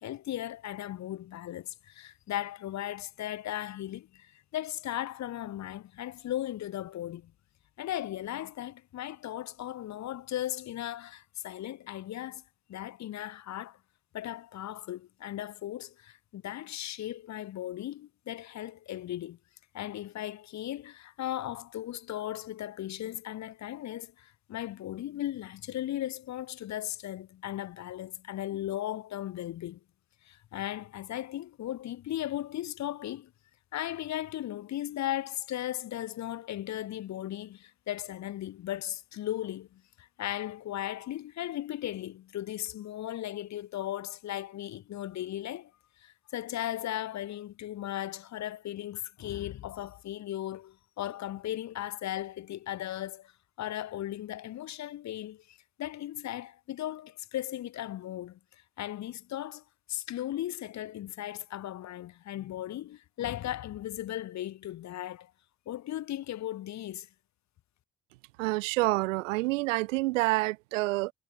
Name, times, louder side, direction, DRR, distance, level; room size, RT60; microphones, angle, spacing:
voice 1, 0.0-7.3 7.8-12.4 12.7-13.8 14.1-19.4 19.7-29.8 30.2-33.3 33.7-45.7 46.0-53.3 53.6-58.4 58.8-59.6 59.9-65.3 65.7-67.1, left 13 dB, 45° left, 0.9 m, -37 dB
voice 2, 68.4-71.1, right 22 dB, 70° right, 1.0 m, -28 dB
figure-of-eight pair, 45°, 39 cm